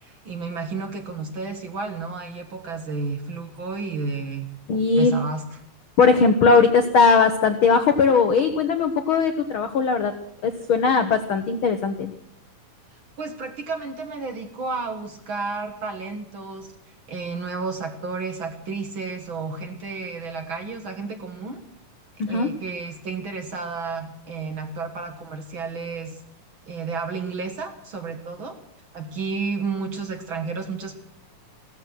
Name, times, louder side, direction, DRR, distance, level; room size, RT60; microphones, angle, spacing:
voice 1, 0.0-4.5 4.9-5.4 13.2-16.7 17.1-21.6 22.3-26.2 26.7-28.6 28.9-30.9, right 4 dB, 45° right, 5 dB, 1.9 m, -31 dB
voice 2, 4.7-5.1 6.0-10.1 10.4-12.1 22.2-22.5, left 5 dB, 65° left, 8 dB, 1.3 m, -19 dB
16.0 x 14.0 x 6.2 m, 0.74 s
omnidirectional pair, 3.7 m